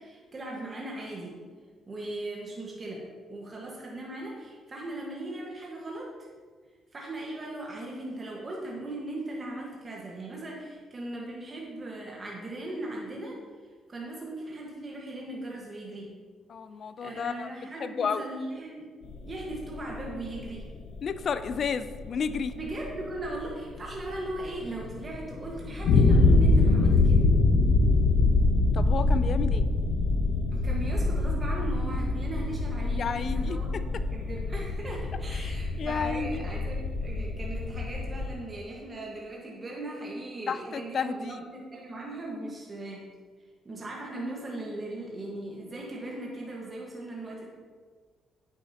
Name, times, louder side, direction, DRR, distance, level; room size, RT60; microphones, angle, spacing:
voice 1, 0.0-1.4 1.9-6.3 6.9-13.4 13.9-16.2 17.0-18.9 19.2-20.7 22.5-27.3 30.5-43.1 43.6-47.5, right 1 dB, 30° right, -2 dB, 1.4 m, -38 dB
voice 2, 16.5-17.5 17.8-18.2 21.0-22.5 28.7-29.7 32.9-33.6 35.3-36.4 40.5-41.4, left 6 dB, 55° left, 12 dB, 0.4 m, -32 dB
sound 1, 19.0-38.3, left 3 dB, 80° left, 0.8 m, -25 dB
9.0 x 7.0 x 2.8 m, 1.6 s
cardioid pair, 90°, 0 cm